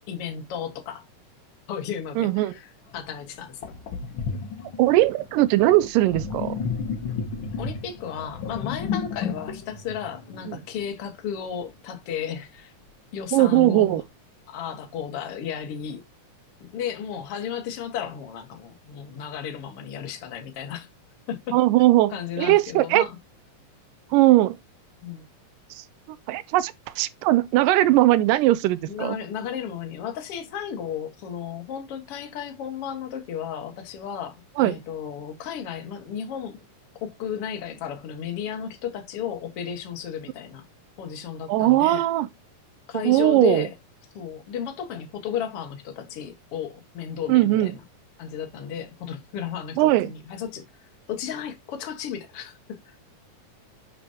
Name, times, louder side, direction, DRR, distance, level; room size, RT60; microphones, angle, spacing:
voice 1, 0.1-1.0 1.7-3.7 7.6-12.7 13.1-14.0 14.5-16.0 16.6-20.9 21.3-21.6 22.1-23.2 25.0-25.2 28.9-36.6 37.0-40.6 41.0-42.0 42.9-43.7 44.1-47.7 48.2-50.6 51.1-53.0, left 8 dB, 50° left, 2.2 m, -34 dB
voice 2, 2.2-2.5 4.8-6.6 10.5-10.6 13.3-14.0 21.5-23.1 24.1-24.6 25.7-25.8 26.3-29.2 34.6-34.8 41.5-42.3 43.0-43.7 47.3-47.8 49.8-50.1, right 16 dB, 90° right, 2.2 m, -19 dB
Sink (filling or washing), 2.9-3.0 3.6-10.9, left 5 dB, 80° left, 1.1 m, -33 dB
10.0 x 5.0 x 2.7 m
omnidirectional pair, 3.8 m